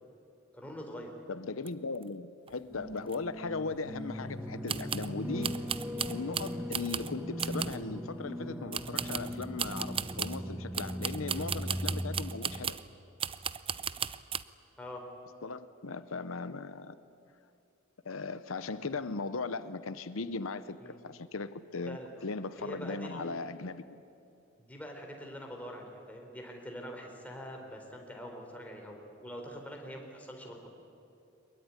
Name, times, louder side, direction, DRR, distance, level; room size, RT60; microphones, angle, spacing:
voice 1, 0.5-1.1 11.2-11.4 14.8-15.0 20.8-21.0 21.9-22.1 22.6-23.2 24.6-30.7, equal, 5° left, 1 dB, 3.9 m, -44 dB
voice 2, 1.3-5.6 6.1-12.8 15.4-17.0 18.0-24.0, left 3 dB, 85° left, 13 dB, 0.8 m, -38 dB
sound 1, 1.7-1.8 1.9-2.0 2.5-2.6 3.1-3.2 4.7-5.1 5.4-7.1 7.4-7.8 8.7-10.4 10.7-12.9 13.2-14.4, right 8 dB, 25° right, 0.5 m, -36 dB
sound 2, 2.7-12.6, equal, 10° right, 1.2 m, -39 dB
23.0 x 22.0 x 9.7 m, 2.7 s
head